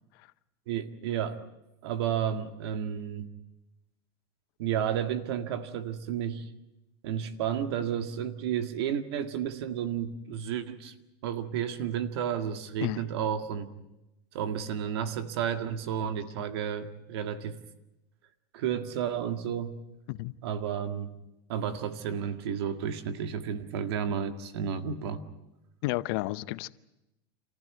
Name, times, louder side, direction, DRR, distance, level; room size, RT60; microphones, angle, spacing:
voice 1, 0.7-1.4 1.8-3.3 4.6-6.4 7.0-10.9 11.2-13.7 14.3-17.6 18.5-19.7 20.4-21.1 21.5-25.2, right 8 dB, 80° right, 1.9 m, -32 dB
voice 2, 25.8-26.7, left 19 dB, 65° left, 0.7 m, -31 dB
27.5 x 15.5 x 9.4 m
supercardioid pair, 130°, 13 cm